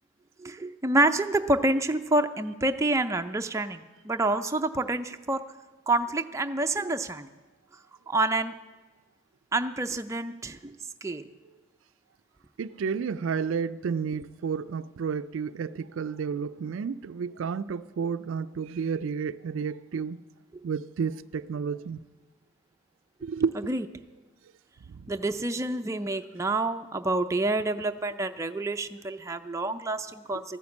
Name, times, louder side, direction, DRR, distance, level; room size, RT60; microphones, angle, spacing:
voice 1, 0.4-5.4 5.9-7.3 8.1-8.5 9.5-11.2 23.7-23.9 25.1-30.6, right 2 dB, 15° right, 7 dB, 0.4 m, -28 dB
voice 2, 12.6-20.2 20.6-22.0 23.2-23.6 24.9-25.1, right 6 dB, 75° right, 14 dB, 0.4 m, -31 dB
14.0 x 9.6 x 7.2 m, 1.2 s
head